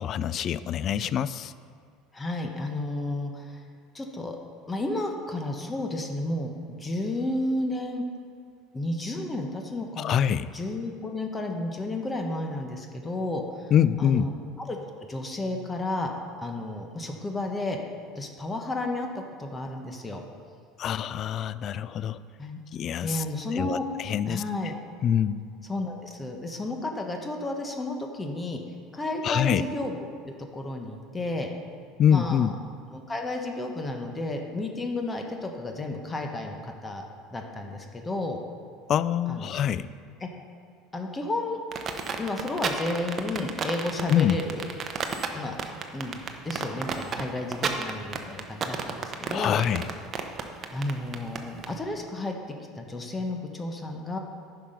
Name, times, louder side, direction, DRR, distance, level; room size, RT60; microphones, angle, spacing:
voice 1, 0.0-1.5 10.0-10.5 13.7-14.3 20.8-22.2 22.7-23.2 23.5-24.4 25.0-25.4 29.2-29.6 32.0-32.5 38.9-39.9 44.1-44.4 49.3-49.8, left 9 dB, 45° left, 16 dB, 0.3 m, -25 dB
voice 2, 2.1-3.6 3.9-4.4 4.7-8.0 8.7-10.1 10.5-13.7 14.0-14.8 15.1-16.1 16.4-17.8 18.1-20.2 22.4-22.6 23.0-23.9 24.3-24.7 25.7-28.6 28.9-30.0 30.3-31.5 32.1-32.5 32.9-37.0 37.3-38.4 39.3-39.6 40.2-40.3 40.9-41.6 42.2-44.6 45.3-45.5 45.9-49.6 50.7-54.2, left 2 dB, 20° left, 3 dB, 1.1 m, -32 dB
sound 1, 41.7-51.7, right 6 dB, 35° right, 0.9 m, -32 dB
10.0 x 5.9 x 5.2 m, 2.1 s
supercardioid pair, 95°, 0 cm